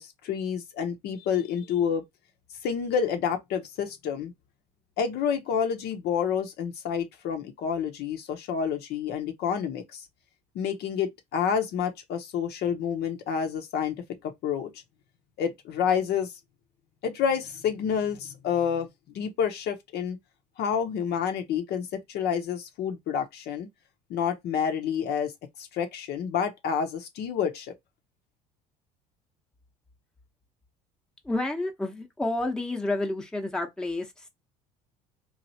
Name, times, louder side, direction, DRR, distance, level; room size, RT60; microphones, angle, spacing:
voice 1, 0.0-2.0 2.6-4.3 5.0-10.1 10.5-14.7 15.4-16.3 17.0-20.2 20.6-23.7 24.1-25.3 25.6-27.7, left 7 dB, 60° left, 0.7 m, -29 dB
voice 2, 31.2-34.3, left 2 dB, 5° left, 0.8 m, -30 dB
3.1 x 2.4 x 2.7 m
hypercardioid pair, 70°, 19 cm